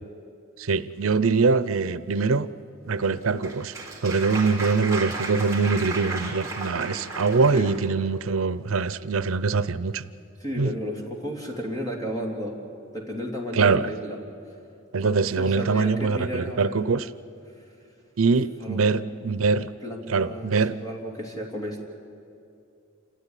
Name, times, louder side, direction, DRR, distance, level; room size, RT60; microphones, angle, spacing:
voice 1, 0.6-2.5 2.9-3.7 4.0-10.0 10.6-10.8 13.5-13.8 14.9-17.1 18.2-19.7 20.1-20.8, right 4 dB, 80° right, 15 dB, 0.6 m, -23 dB
Applause, 3.0-7.9, right 3 dB, 15° right, 3.3 m, -34 dB
voice 2, 10.4-12.6 12.9-14.2 15.0-16.9 17.6-17.7 18.6-19.4 19.8-21.8, equal, 20° left, 0 dB, 3.2 m, -33 dB
28.0 x 14.0 x 10.0 m, 2.6 s
head